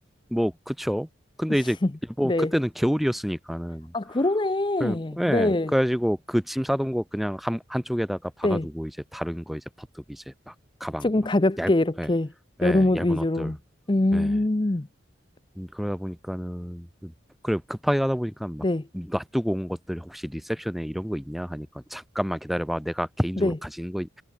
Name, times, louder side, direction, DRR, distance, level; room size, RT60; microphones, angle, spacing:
voice 1, 0.3-1.1 1.4-1.8 2.2-3.9 4.8-10.5 10.8-11.1 11.6-11.7 12.0-12.1 12.6-13.6 14.1-14.4 15.6-17.1 17.4-18.6 18.9-24.2, equal, ahead, 0.9 m, -28 dB
voice 2, 3.9-5.7 8.4-8.7 11.0-12.3 12.6-13.6 13.9-14.9 18.6-18.8 23.4-23.6, left 2 dB, 25° left, 0.6 m, -23 dB
head